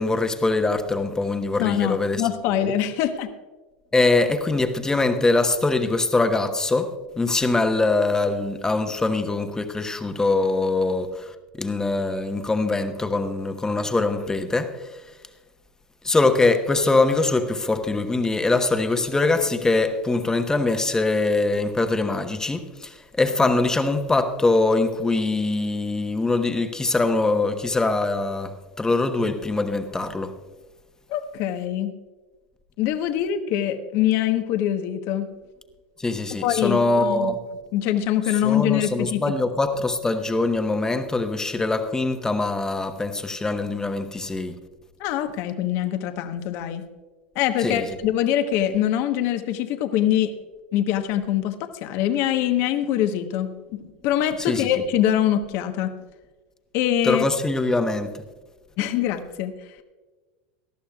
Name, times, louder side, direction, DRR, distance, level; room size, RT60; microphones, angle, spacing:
voice 1, 0.0-2.7 3.9-15.0 16.0-30.3 36.0-37.4 38.4-44.6 47.6-47.9 54.4-54.7 57.0-58.1, left 3 dB, 10° left, 1.1 m, -23 dB
voice 2, 1.6-3.3 31.1-31.9 32.8-35.3 36.4-37.3 37.7-39.2 45.0-46.8 47.3-50.3 50.7-51.5 51.8-53.5 54.0-55.9 56.7-57.3 58.8-59.5, left 11 dB, 55° left, 1.1 m, -23 dB
19.0 x 12.5 x 2.4 m
hypercardioid pair, 100°, 5 cm